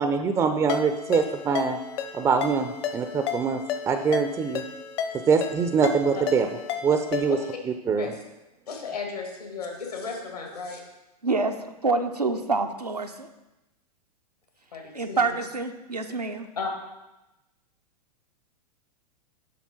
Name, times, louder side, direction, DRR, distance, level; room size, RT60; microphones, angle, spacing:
voice 1, 0.0-1.8 2.1-3.6 3.9-4.6 5.3-6.5 6.8-7.4 7.7-8.1, right 5 dB, 15° right, 8 dB, 0.4 m, -24 dB
Ringtone, 0.7-7.6, left 7 dB, 40° left, 0.8 m, -33 dB
voice 2, 8.7-10.8 14.7-15.3 16.6-16.7, left 5 dB, 75° left, 2 dB, 2.0 m, -34 dB
voice 3, 11.2-13.3 14.9-16.5, right 3 dB, 90° right, 5 dB, 0.7 m, -27 dB
7.7 x 5.7 x 4.3 m, 0.99 s
figure-of-eight pair, 100°, 20 cm